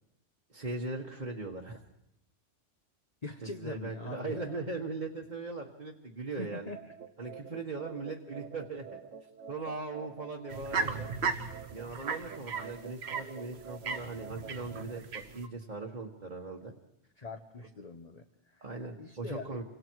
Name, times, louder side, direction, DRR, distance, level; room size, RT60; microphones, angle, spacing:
voice 1, 0.5-1.8 3.4-6.7 7.2-8.9 9.5-11.1 11.7-16.7 18.6-19.6, right 3 dB, 35° right, -1 dB, 1.6 m, -39 dB
voice 2, 3.2-4.6 6.3-6.8 8.3-8.4 17.2-18.6 19.0-19.5, left 3 dB, 35° left, 5 dB, 1.2 m, -43 dB
sound 1, 6.7-15.0, right 7 dB, 90° right, 1.4 m, -48 dB
sound 2, 10.5-15.5, right 5 dB, 60° right, 1.3 m, -36 dB
28.5 x 25.5 x 4.7 m, 0.83 s
omnidirectional pair, 1.2 m